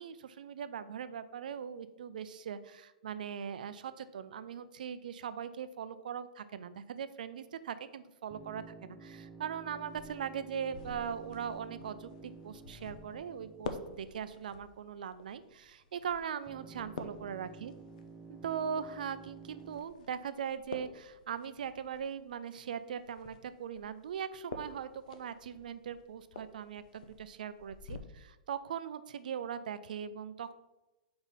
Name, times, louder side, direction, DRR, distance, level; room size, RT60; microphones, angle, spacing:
voice 1, 0.0-17.7 18.3-30.5, right 8 dB, 75° right, 13 dB, 0.5 m, -40 dB
sound 1, 8.3-14.6 16.5-19.8, right 4 dB, 5° right, 0.7 m, -52 dB
sound 2, 9.8-28.0, left 4 dB, 65° left, 0.7 m, -50 dB
4.8 x 4.0 x 5.5 m, 1.0 s
hypercardioid pair, 140°, 5 cm